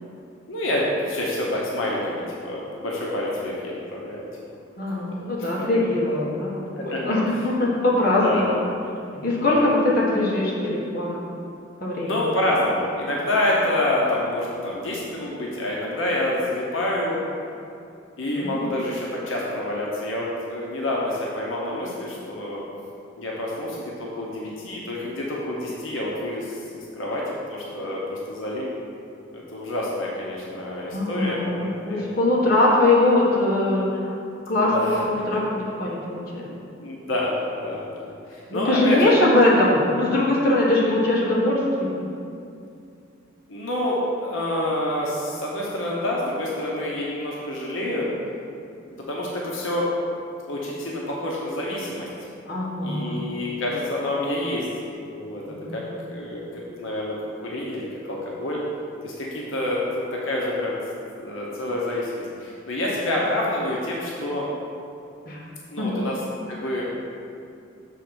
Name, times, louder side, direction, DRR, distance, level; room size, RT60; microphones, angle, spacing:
voice 1, 0.5-4.2 5.4-5.5 6.0-6.2 6.8-7.0 8.2-8.6 9.3-9.6 12.0-17.2 18.2-22.6 23.2-28.0 28.3-28.7 29.3-32.0 34.6-35.0 36.8-39.2 43.5-48.1 48.9-49.9 50.5-52.1 52.8-54.7 55.1-55.4 55.7-55.8 56.1-56.4 56.8-57.2 57.4-58.6 59.0-60.8 61.2-64.5 65.7-66.8, left 1 dB, 85° left, -4 dB, 1.0 m, -27 dB
voice 2, 4.8-8.6 9.2-11.2 11.8-12.2 18.4-18.7 30.9-31.5 31.8-34.0 34.5-36.5 38.5-42.0 52.5-53.2 55.5-55.8 65.3-65.4 65.8-66.0, left 2 dB, 50° left, -5 dB, 1.5 m, -21 dB
6.7 x 3.8 x 6.2 m, 2.5 s
head